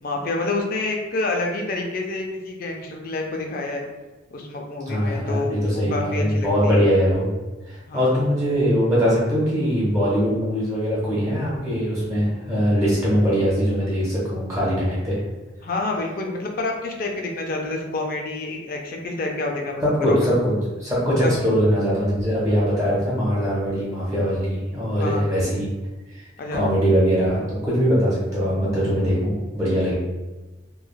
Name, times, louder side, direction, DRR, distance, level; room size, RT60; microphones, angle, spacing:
voice 1, 0.0-3.8 4.3-6.8 7.9-8.2 15.6-19.7 20.1-20.3 21.2-21.3 25.0-25.2 26.4-26.7, left 2 dB, 45° left, 1 dB, 0.4 m, -28 dB
voice 2, 4.9-7.3 7.7-15.2 19.8-25.7 26.1-30.0, equal, 15° right, -8 dB, 0.7 m, -22 dB
3.1 x 2.2 x 2.2 m, 1.2 s
head